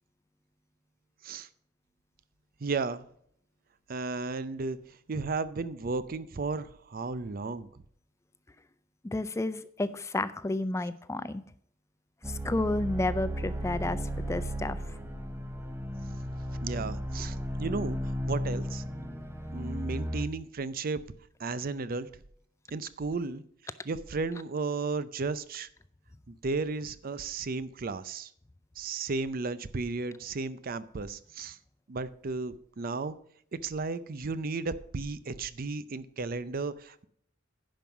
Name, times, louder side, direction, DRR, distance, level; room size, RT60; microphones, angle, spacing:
voice 1, 2.6-3.0 3.9-7.7 16.6-18.0 18.2-18.8 19.5-21.0 21.4-22.1 22.7-23.4 23.8-25.7 26.3-28.3 28.8-31.6 31.9-33.2 33.5-37.0, right 3 dB, 50° right, 15 dB, 0.5 m, -34 dB
voice 2, 9.0-11.5 12.3-14.8, left 2 dB, 15° left, 15 dB, 0.3 m, -31 dB
sound 1, 12.2-20.3, equal, 10° right, 0.9 m, -35 dB
10.5 x 5.5 x 6.0 m, 0.65 s
head